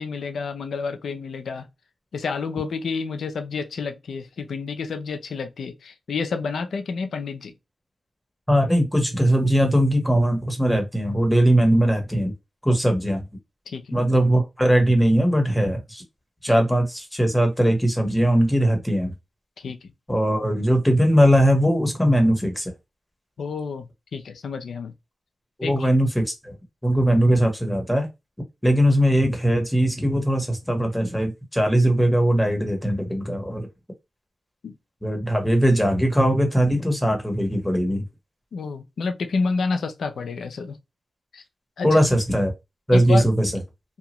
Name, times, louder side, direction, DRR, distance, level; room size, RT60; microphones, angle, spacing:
voice 1, 0.0-1.7 2.1-7.5 13.7-13.9 19.6-19.9 23.4-24.9 25.6-25.9 34.6-34.7 38.5-40.8 41.3-41.4 41.8-42.0 42.9-43.3, left 4 dB, 80° left, 0.5 m, -29 dB
voice 2, 8.5-12.3 12.6-13.2 13.9-16.0 16.4-19.1 20.1-22.7 25.6-26.5 26.8-28.1 28.6-33.7 35.0-38.0 41.8-42.5 42.9-43.5, equal, 5° left, 1.2 m, -20 dB
2.8 x 2.3 x 2.9 m
cardioid pair, 55°, 0 cm